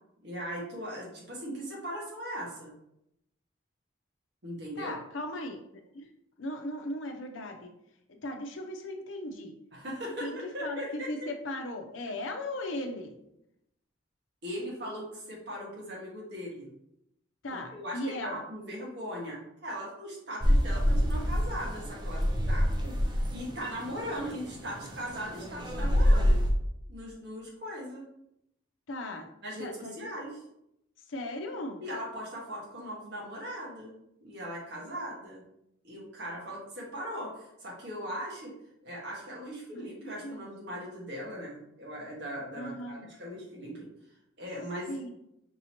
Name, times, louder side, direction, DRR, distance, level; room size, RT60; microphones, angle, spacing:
voice 1, 0.2-2.7 4.4-5.0 9.7-11.1 14.4-16.7 17.7-22.2 22.5-26.3 26.9-28.0 29.4-30.4 31.8-35.4 35.8-38.5 38.8-43.9 44.4-45.0, equal, 60° right, -4 dB, 1.5 m, -39 dB
voice 2, 4.8-5.6 5.9-6.1 6.4-7.7 8.2-9.5 10.2-13.2 17.4-18.4 28.9-29.3 29.6-30.0 31.1-31.8 39.7-40.5 42.5-43.1 44.9-45.1, left 1 dB, 80° left, 4 dB, 0.7 m, -37 dB
sound 1, 20.4-26.5, equal, 25° right, 0.5 m, -27 dB
5.4 x 2.8 x 2.9 m, 0.80 s
head